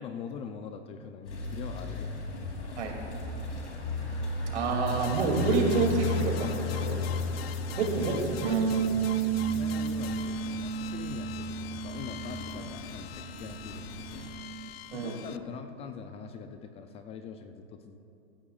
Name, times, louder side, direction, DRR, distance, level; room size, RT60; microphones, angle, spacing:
voice 1, 0.0-2.1 2.5-2.8 6.7-7.4 9.4-14.2 14.9-18.0, left 6 dB, 20° left, 7 dB, 0.3 m, -43 dB
sound 1, 1.2-14.3, left 3 dB, 90° left, 2.9 m, -36 dB
voice 2, 4.5-7.0 7.8-8.9 9.1-9.3 14.9-15.2, right 4 dB, 80° right, 1 dB, 2.6 m, -29 dB
sound 2, 4.9-15.4, left 12 dB, 60° left, 0.6 m, -45 dB
Bass guitar, 8.4-14.7, right 7 dB, 55° right, 0.8 m, -33 dB
16.0 x 14.0 x 2.4 m, 2.6 s
hypercardioid pair, 120°, 34 cm